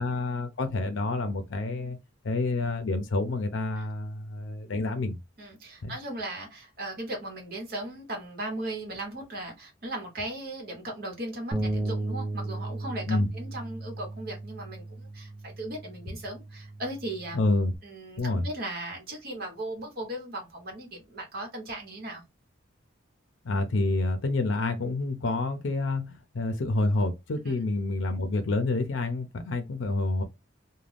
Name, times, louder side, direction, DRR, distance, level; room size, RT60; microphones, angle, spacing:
voice 1, 0.0-2.0 2.2-5.2 5.8-5.9 13.1-13.3 17.3-17.7 18.2-18.5 23.4-30.2, left 2 dB, 75° left, 0.5 m, -28 dB
voice 2, 5.4-17.4 17.8-22.2 27.5-27.6, right 1 dB, 50° right, 1.1 m, -37 dB
Bass guitar, 11.5-17.8, right 2 dB, 15° right, 0.5 m, -35 dB
2.5 x 2.2 x 3.3 m
head